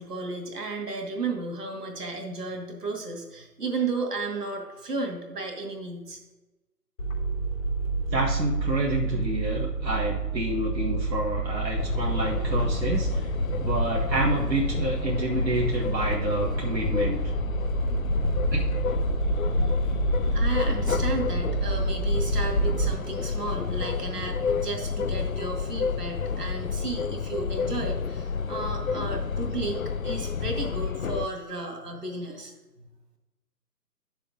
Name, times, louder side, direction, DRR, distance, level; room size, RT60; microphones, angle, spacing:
voice 1, 0.0-6.2 19.5-32.5 32.8-32.9, right 3 dB, 65° right, 1 dB, 2.5 m, -34 dB
sound 1, 7.0-22.9, right 3 dB, 75° left, 3.4 m, -29 dB
voice 2, 8.1-13.3 13.6-17.2 18.5-18.6, right 1 dB, 85° right, -3 dB, 1.8 m, -28 dB
sound 2, 11.8-31.3, left 5 dB, 60° left, 0.5 m, -30 dB
10.5 x 6.8 x 3.8 m, 1.1 s
figure-of-eight pair, 160°, 49 cm